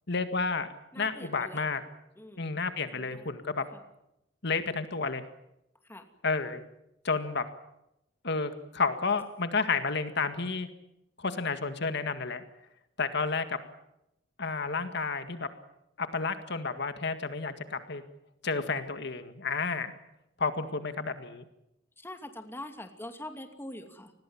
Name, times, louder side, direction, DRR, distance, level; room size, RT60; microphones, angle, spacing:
voice 1, 0.1-0.7 1.0-1.8 2.4-3.6 4.4-5.2 6.2-6.6 7.0-7.4 8.2-10.7 11.2-12.4 13.0-13.6 14.4-15.5 16.0-18.0 18.4-19.9 20.4-21.4, left 4 dB, 60° left, 9 dB, 1.9 m, -31 dB
voice 2, 0.9-1.7 2.2-3.3 3.7-3.8 5.8-6.1 22.0-24.1, left 1 dB, 10° left, 6 dB, 2.6 m, -44 dB
29.0 x 20.5 x 7.3 m, 0.85 s
head